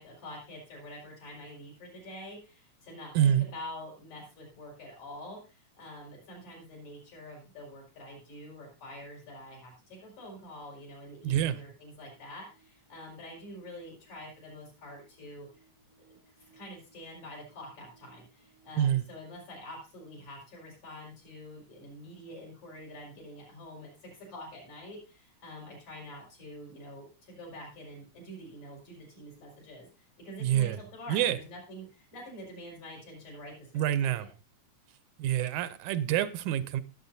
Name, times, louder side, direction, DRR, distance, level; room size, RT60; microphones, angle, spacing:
voice 1, 0.0-15.5 16.1-34.3, left 1 dB, 70° left, 6.3 m, -46 dB
voice 2, 3.2-3.5 11.2-11.6 18.8-19.0 30.4-30.8 31.1-31.4 33.7-34.3 35.2-36.8, right 10 dB, 85° right, 2.1 m, -27 dB
sound 1, 11.9-18.8, right 4 dB, 25° left, 0.5 m, -66 dB
18.5 x 7.9 x 2.6 m
omnidirectional pair, 3.3 m